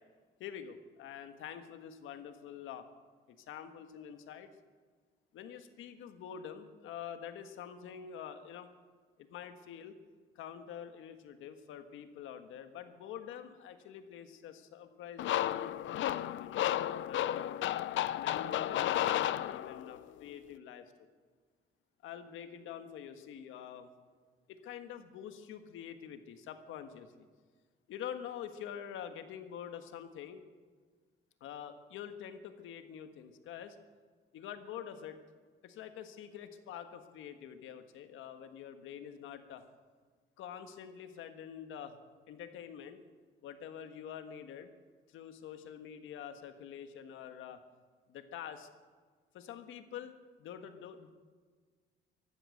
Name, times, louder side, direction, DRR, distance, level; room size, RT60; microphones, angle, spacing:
voice 1, 0.4-2.9 3.3-4.5 5.3-8.7 9.2-10.0 10.3-16.6 17.0-17.6 18.1-21.1 22.0-23.9 24.5-27.3 27.9-30.4 31.4-33.8 34.3-35.2 35.6-39.6 40.4-42.0 42.3-43.0 43.4-44.7 45.1-47.6 48.1-48.7 49.3-50.1 50.4-51.1, left 9 dB, 90° left, 8 dB, 1.5 m, -46 dB
sound 1, 15.2-20.0, left 12 dB, 70° left, 0.5 m, -33 dB
15.5 x 11.5 x 8.0 m, 1.5 s
cardioid pair, 90°, 20 cm